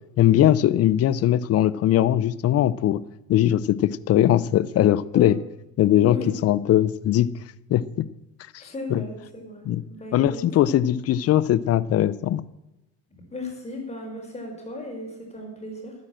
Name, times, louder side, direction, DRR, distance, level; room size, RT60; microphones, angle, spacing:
voice 1, 0.2-3.0 3.3-5.4 5.8-6.2 6.4-7.3 7.7-8.1 8.5-8.6 8.9-9.0 9.7-9.8 10.1-12.4, left 12 dB, 50° left, 18 dB, 0.7 m, -20 dB
voice 2, 8.6-10.4 13.1-15.9, left 2 dB, 20° left, 1 dB, 5.0 m, -36 dB
13.5 x 9.6 x 7.7 m, 0.96 s
cardioid pair, 110°, 31 cm